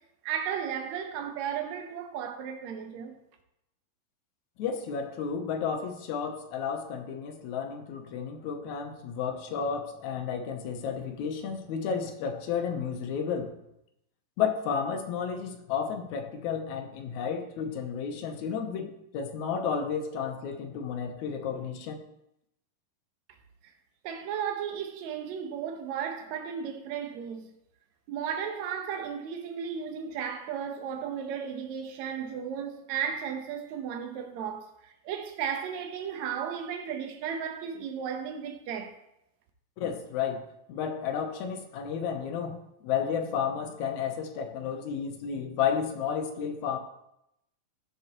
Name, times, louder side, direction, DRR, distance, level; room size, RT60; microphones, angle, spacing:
voice 1, 0.2-3.2 24.0-27.5 28.1-38.9, right 8 dB, 65° right, 2.1 m, -34 dB
voice 2, 4.6-13.6 14.4-22.0 39.8-46.8, left 7 dB, 70° left, 2.0 m, -32 dB
15.0 x 6.2 x 3.0 m
omnidirectional pair, 3.9 m